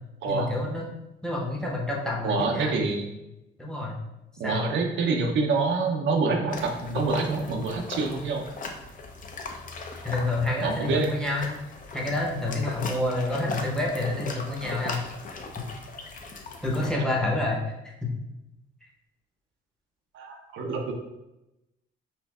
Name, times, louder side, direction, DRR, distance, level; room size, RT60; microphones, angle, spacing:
voice 1, 0.3-0.9 1.2-2.8 3.6-4.0 4.4-4.7 10.0-11.5 11.9-15.0 16.6-18.1, left 2 dB, 5° left, -1 dB, 0.8 m, -28 dB
voice 2, 2.2-3.1 4.4-8.4 10.6-11.1 20.1-20.9, right 4 dB, 75° right, 3 dB, 0.6 m, -26 dB
sound 1, 6.5-16.9, left 3 dB, 45° left, 0.6 m, -38 dB
4.3 x 2.6 x 2.3 m, 0.94 s
cardioid pair, 90°, 20 cm